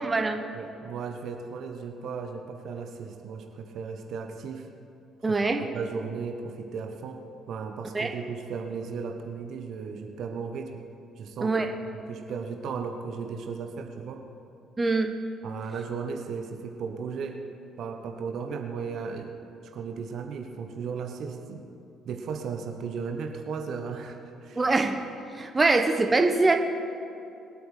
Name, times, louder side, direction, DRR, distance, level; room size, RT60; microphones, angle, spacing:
voice 1, 0.0-0.4 5.2-5.7 7.9-8.1 11.4-11.7 14.8-15.1 24.6-25.0 25.3-26.6, right 3 dB, 25° right, 5 dB, 1.1 m, -23 dB
voice 2, 0.5-4.7 5.3-7.2 7.5-10.8 11.2-14.2 15.4-17.4 17.8-19.3 19.7-21.6 22.0-24.6, right 5 dB, 55° right, 5 dB, 1.1 m, -36 dB
23.0 x 8.5 x 5.0 m, 2.7 s
figure-of-eight pair, 45°, 0 cm